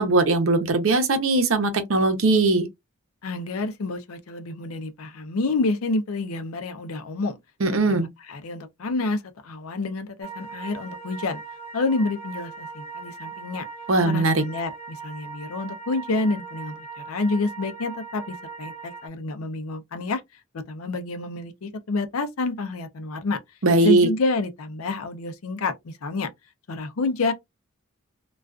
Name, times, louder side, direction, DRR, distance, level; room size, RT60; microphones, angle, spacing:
voice 1, 0.0-2.7 7.6-8.1 13.9-14.4 23.6-24.1, right 2 dB, 70° right, 0.7 m, -20 dB
voice 2, 3.2-7.4 7.9-11.4 11.7-13.6 14.0-20.2 20.5-23.4 23.8-26.3 26.7-27.3, left 3 dB, 85° left, 0.5 m, -28 dB
sound 1, 10.2-19.1, right 5 dB, 25° left, 0.9 m, -39 dB
2.3 x 2.3 x 2.3 m
head